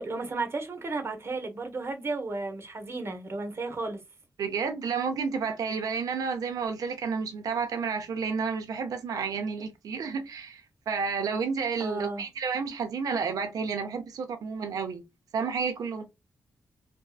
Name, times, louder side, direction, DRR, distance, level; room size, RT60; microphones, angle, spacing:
voice 1, 0.0-4.0 11.8-12.3, right 3 dB, 45° right, 0.8 m, -33 dB
voice 2, 4.4-15.0 15.3-16.0, right 5 dB, 80° right, 0.6 m, -31 dB
2.6 x 2.3 x 2.2 m
cardioid pair, 75°, 6 cm